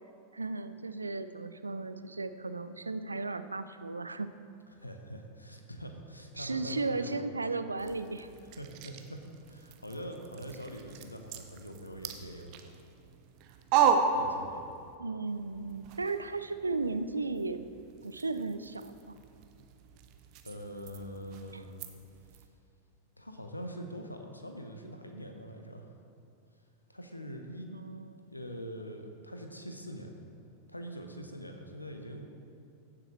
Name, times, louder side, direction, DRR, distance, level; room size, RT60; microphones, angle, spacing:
voice 1, 0.3-4.3 6.4-8.3 15.0-17.7 18.0-19.1 21.5-21.6 27.7-28.3, right 3 dB, 80° right, 11 dB, 0.4 m, -35 dB
voice 2, 4.7-7.2 8.2-12.8 14.1-14.7 20.4-21.7 23.2-25.9 26.9-27.7 28.3-30.2 30.7-32.3, equal, 85° left, 4 dB, 0.9 m, -44 dB
sound 1, 7.8-15.0 15.3-22.5, right 6 dB, 45° right, 0.7 m, -35 dB
15.5 x 7.6 x 3.1 m, 2.5 s
figure-of-eight pair, 90°, 0 cm